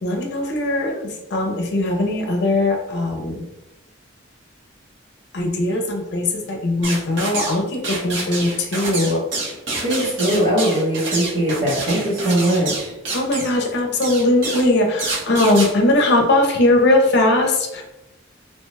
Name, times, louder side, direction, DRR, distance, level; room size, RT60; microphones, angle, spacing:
voice 1, 0.0-3.4 5.3-9.2 13.1-17.8, left 2 dB, 55° left, 1 dB, 0.5 m, -19 dB
sound 1, 6.8-7.6 7.8-13.6 14.0-14.7 15.0-15.7, right 2 dB, 70° right, 0.9 m, -27 dB
voice 2, 9.7-12.9, right 1 dB, 45° right, -6 dB, 1.4 m, -20 dB
2.9 x 2.2 x 3.2 m, 0.94 s
head